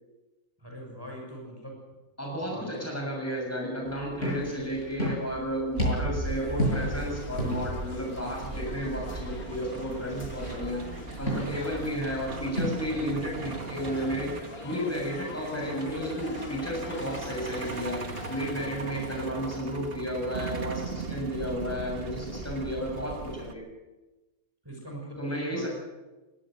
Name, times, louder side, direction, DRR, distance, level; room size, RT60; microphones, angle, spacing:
voice 1, 0.6-1.8 2.4-2.9 18.8-19.1 24.6-25.7, right 1 dB, 15° right, 0 dB, 6.4 m, -41 dB
voice 2, 2.2-10.9 11.2-14.4 14.6-18.0 18.3-23.7 25.2-25.7, equal, 10° left, -1 dB, 6.5 m, -32 dB
sound 1, 3.8-12.7, equal, 55° left, 8.5 m, -33 dB
Truck, 5.8-23.5, right 4 dB, 40° right, 1.6 m, -38 dB
sound 2, 6.2-19.3, left 4 dB, 85° left, 2.5 m, -44 dB
23.5 x 19.5 x 6.4 m, 1.1 s
omnidirectional pair, 1.5 m